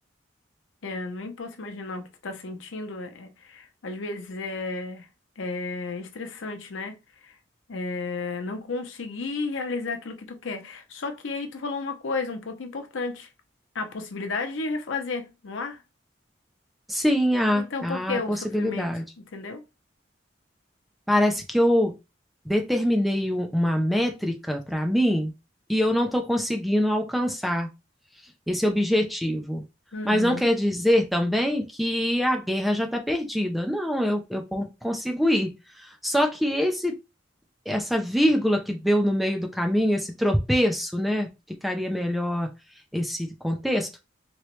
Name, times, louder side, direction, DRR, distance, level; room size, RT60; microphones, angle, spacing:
voice 1, 0.8-5.1 5.4-6.9 7.2-7.4 7.7-13.3 13.7-15.8 17.5-18.9 19.2-19.6 29.9-30.5, left 3 dB, 90° left, 0.7 m, -33 dB
voice 2, 16.9-19.0 21.1-21.9 22.5-25.3 25.7-27.7 28.5-29.6 30.0-35.5 35.8-36.9 37.7-41.3 41.6-42.5 42.9-43.9, equal, ahead, 0.4 m, -24 dB
3.1 x 2.9 x 3.0 m
head